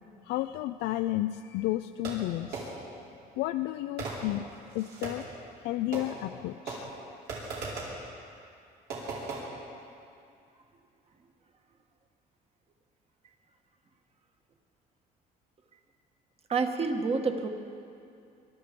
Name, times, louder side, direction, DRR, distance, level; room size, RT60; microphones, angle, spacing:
voice 1, 0.2-2.8 3.4-5.3 5.6-6.9, left 15 dB, 85° left, 10 dB, 0.4 m, -32 dB
Fireworks, 2.0-3.0 4.0-5.4 5.9-6.4 6.7-8.0 8.9-9.4, right 3 dB, 75° right, 5.1 m, -38 dB
voice 2, 16.5-17.5, right 4 dB, 35° right, 5 dB, 1.5 m, -28 dB
22.5 x 12.0 x 5.2 m, 2.5 s
cardioid pair, 110°, 17 cm